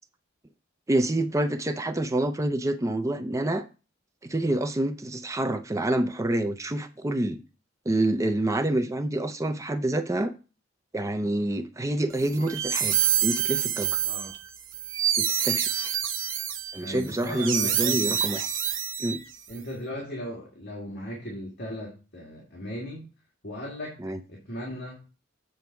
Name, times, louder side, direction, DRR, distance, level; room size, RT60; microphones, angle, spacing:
voice 1, 0.9-3.6 4.2-7.4 7.9-10.3 10.9-14.0 15.2-15.9 16.7-18.5 19.0-19.2 24.0-24.2, right 1 dB, 15° right, 0.5 m, -27 dB
sound 1, 12.2-19.5, right 9 dB, 75° right, 1.0 m, -27 dB
voice 2, 14.0-14.3 16.8-18.2 19.5-23.1 23.4-24.0 24.3-25.0, equal, 55° left, 2.0 m, -37 dB
7.9 x 4.1 x 5.7 m
head